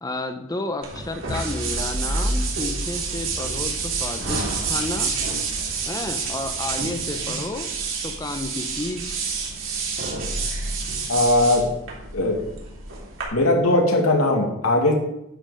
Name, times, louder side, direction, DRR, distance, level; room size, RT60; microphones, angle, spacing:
voice 1, 0.0-5.1 5.8-7.7 8.0-9.2, left 2 dB, 15° left, 7 dB, 0.9 m, -31 dB
sound 1, 0.8-13.2, right 4 dB, 60° right, 3.4 m, -28 dB
voice 2, 11.1-11.7 12.1-12.4 13.3-14.9, left 2 dB, 80° left, 1 dB, 2.5 m, -19 dB
11.0 x 7.9 x 5.2 m, 0.86 s
head